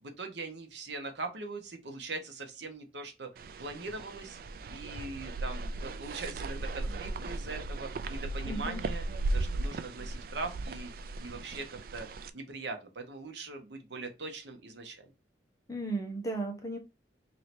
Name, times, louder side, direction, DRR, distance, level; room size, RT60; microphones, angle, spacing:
voice 1, 0.0-4.4 4.7-9.0 9.3-12.1 12.3-15.0, right 3 dB, 70° right, 6 dB, 0.9 m, -41 dB
sound 1, 3.4-12.3, right 2 dB, 50° right, 0.3 m, -37 dB
voice 2, 8.5-8.8 15.7-16.8, right 2 dB, 20° left, 2 dB, 0.8 m, -35 dB
3.1 x 2.8 x 4.2 m, 0.26 s
head